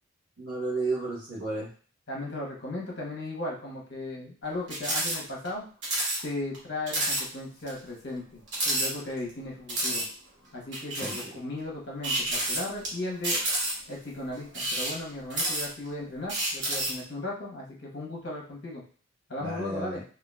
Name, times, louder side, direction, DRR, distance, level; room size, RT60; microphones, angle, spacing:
voice 1, 0.4-1.7 11.0-11.1 19.4-20.0, right 2 dB, 85° right, -5 dB, 0.8 m, -32 dB
voice 2, 2.1-5.6 6.2-10.0 10.5-13.4 13.9-18.8 19.3-20.0, left 2 dB, 55° left, -2 dB, 0.9 m, -36 dB
sound 1, 4.7-5.2 5.4-5.5 5.8-6.2 6.5-6.6 6.9-7.2 7.7-7.8 8.5-9.3 9.7-10.1 10.7-11.3 12.0-12.9 13.2-13.9 14.5-15.9 16.3-17.0, right 1 dB, 55° right, 1.1 m, -29 dB
3.7 x 2.3 x 2.3 m, 0.42 s
head